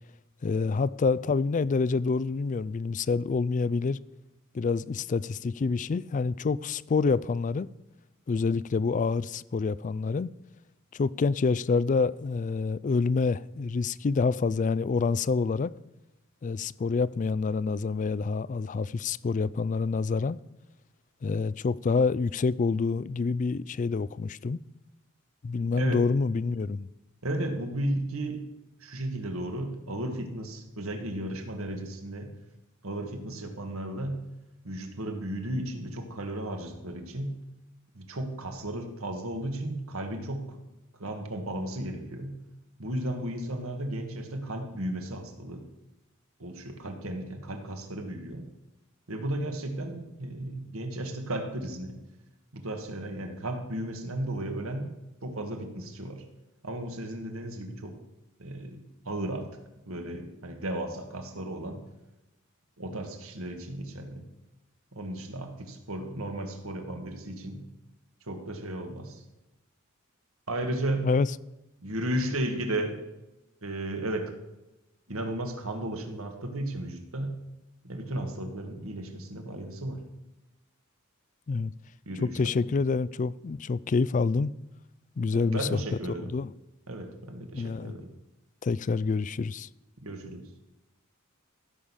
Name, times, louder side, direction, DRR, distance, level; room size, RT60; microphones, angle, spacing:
voice 1, 0.4-4.0 4.5-7.7 8.3-10.3 10.9-15.7 16.4-20.4 21.2-24.6 25.4-26.9 71.0-71.3 81.5-81.7 82.2-84.5 85.2-85.8 86.3-86.5 87.5-88.0 88.6-89.7, left 4 dB, 35° left, 0.3 m, -27 dB
voice 2, 25.7-26.1 27.2-28.5 28.8-32.3 32.8-34.2 34.6-37.4 37.9-40.6 41.0-42.4 42.8-45.6 46.4-48.5 49.1-52.0 52.5-54.9 55.2-56.2 56.6-58.0 58.4-59.5 59.9-61.8 62.8-64.2 64.9-67.7 68.2-69.2 70.5-71.1 71.8-73.0 73.6-74.4 75.1-77.4 77.8-80.0 82.1-82.5 85.3-86.4 86.9-88.1 90.0-90.5, right 1 dB, 70° right, 1.9 m, -34 dB
15.5 x 6.4 x 7.3 m
head